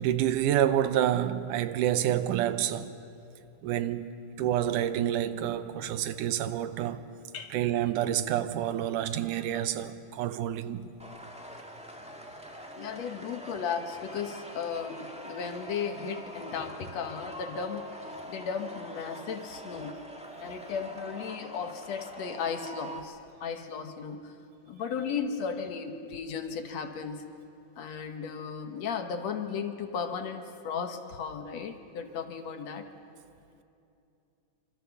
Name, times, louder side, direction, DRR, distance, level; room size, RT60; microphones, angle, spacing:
voice 1, 0.0-2.9 3.6-7.1 7.5-10.9, right 11 dB, 85° right, 2.4 m, -28 dB
sound 1, 11.0-23.0, right 1 dB, 5° right, 0.7 m, -44 dB
voice 2, 12.5-17.9 18.3-20.0 20.4-24.4 24.7-27.3 27.8-32.9, left 6 dB, 65° left, 2.2 m, -35 dB
26.0 x 25.5 x 7.0 m
omnidirectional pair, 3.6 m